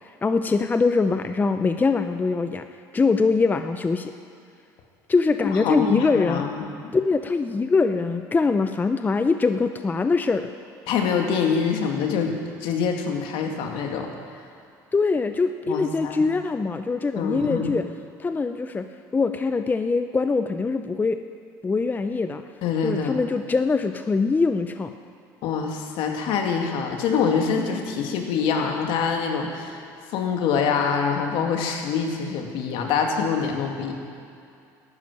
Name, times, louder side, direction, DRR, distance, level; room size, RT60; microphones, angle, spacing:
voice 1, 0.2-2.6 2.9-4.1 5.1-6.4 6.9-10.5 14.9-17.9 18.2-18.9 19.1-21.2 21.6-22.4 22.8-24.9, left 4 dB, 20° left, 8 dB, 0.6 m, -23 dB
voice 2, 5.4-6.9 10.9-14.1 15.7-16.2 17.2-17.8 22.6-23.2 25.4-29.8 30.1-33.9, left 6 dB, 70° left, 3 dB, 2.1 m, -25 dB
12.0 x 10.5 x 8.9 m, 2.5 s
supercardioid pair, 90°, 9 cm